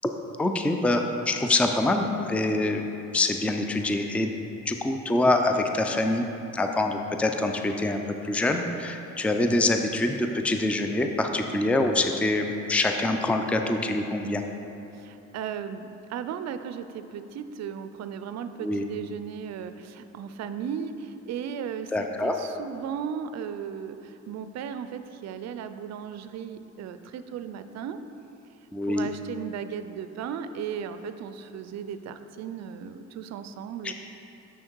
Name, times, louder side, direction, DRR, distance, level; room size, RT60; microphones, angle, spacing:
voice 1, 0.4-2.8 3.1-4.3 4.7-6.3 6.5-14.4 18.6-18.8 21.9-22.3 28.7-29.1, left 2 dB, 5° left, 5 dB, 0.4 m, -25 dB
voice 2, 14.9-28.0 28.8-33.9, right 7 dB, 60° right, 10 dB, 0.5 m, -36 dB
6.5 x 6.3 x 4.5 m, 2.9 s
cardioid pair, 90°, 30 cm